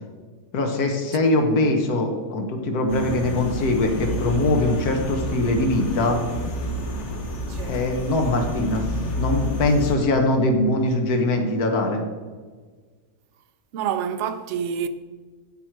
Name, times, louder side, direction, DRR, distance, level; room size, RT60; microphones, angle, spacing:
voice 1, 0.5-6.2 7.6-8.9 9.2-12.0, left 2 dB, 75° left, 1.7 m, -22 dB
sound 1, 2.9-9.9, left 1 dB, 50° left, 1.5 m, -29 dB
voice 2, 7.5-7.8 13.7-14.9, right 8 dB, 60° right, 0.8 m, -27 dB
11.5 x 8.1 x 4.6 m
omnidirectional pair, 1.6 m